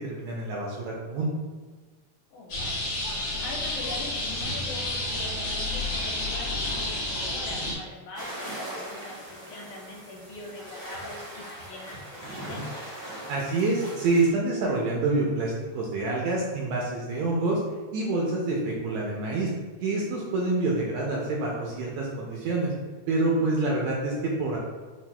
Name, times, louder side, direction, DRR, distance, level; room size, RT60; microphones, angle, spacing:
voice 1, 0.1-1.3 13.3-17.6 17.9-19.5 19.8-22.7 23.1-24.6, right 2 dB, 80° right, -3 dB, 1.6 m, -27 dB
voice 2, 2.3-2.8 3.1-12.6 17.1-17.2, left 2 dB, 80° left, -2 dB, 2.1 m, -42 dB
sound 1, 2.5-7.7, left 2 dB, 65° left, 0.9 m, -30 dB
sound 2, 8.1-14.3, right 1 dB, 60° right, 1.0 m, -40 dB
5.7 x 2.5 x 2.2 m, 1.4 s
omnidirectional pair, 3.5 m